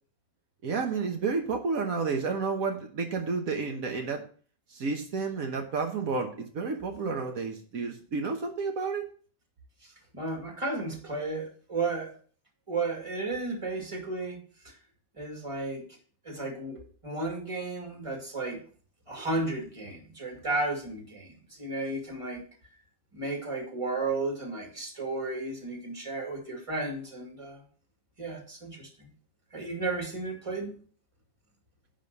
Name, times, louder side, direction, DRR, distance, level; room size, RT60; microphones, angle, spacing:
voice 1, 0.6-4.2 4.7-9.1, right 4 dB, 75° right, 3 dB, 1.5 m, -31 dB
voice 2, 10.1-12.1 12.7-14.7 15.2-15.8 16.2-18.6 19.1-22.4 23.1-27.6 28.2-29.1 29.5-30.7, right 3 dB, 20° right, 1 dB, 2.2 m, -33 dB
10.5 x 3.7 x 6.8 m, 0.43 s
omnidirectional pair, 1.5 m